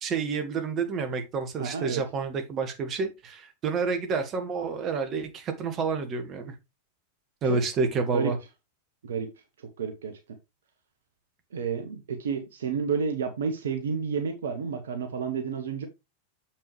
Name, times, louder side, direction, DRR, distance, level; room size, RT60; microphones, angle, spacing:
voice 1, 0.0-6.5 7.4-8.4, right 4 dB, 30° right, 1.5 m, -29 dB
voice 2, 1.6-2.0 7.5-7.6 8.1-8.3 9.0-9.3 9.8-10.1 11.5-15.9, right 6 dB, 65° right, 1.0 m, -30 dB
7.1 x 5.9 x 3.2 m
figure-of-eight pair, 90°, 0 cm